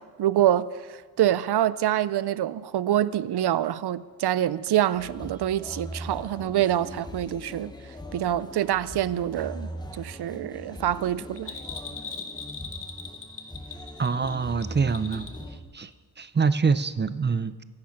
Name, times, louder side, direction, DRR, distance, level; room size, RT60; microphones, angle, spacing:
voice 1, 0.0-7.7 8.1-11.5, right 12 dB, 90° right, 0.5 m, -26 dB
sound 1, 4.9-15.6, equal, 10° left, 1.0 m, -41 dB
Bell, 11.4-15.5 15.8-15.9, left 5 dB, 55° left, 1.8 m, -39 dB
voice 2, 14.0-15.3 15.7-15.9 16.2-17.5, right 5 dB, 30° right, 0.5 m, -25 dB
24.5 x 8.7 x 5.8 m
wide cardioid pair, 165°, 38 cm